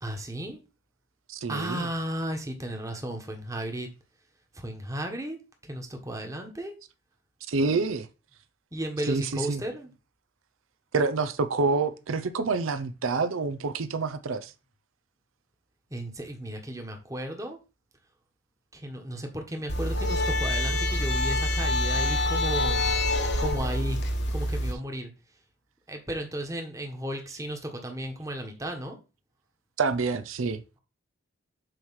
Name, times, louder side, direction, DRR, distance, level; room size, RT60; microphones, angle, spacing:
voice 1, 0.0-0.6 1.5-3.9 4.5-5.4 5.6-6.7 8.7-9.9 15.9-17.6 18.7-22.9 23.4-24.0 24.3-25.1 25.9-29.0, right 1 dB, 15° right, 1.2 m, -34 dB
voice 2, 1.3-1.9 7.5-8.1 9.1-9.6 10.9-14.5 29.8-30.6, right 4 dB, 90° right, 0.6 m, -27 dB
sound 1, 19.7-24.7, left 1 dB, 60° left, 1.3 m, -26 dB
7.8 x 3.2 x 5.6 m
head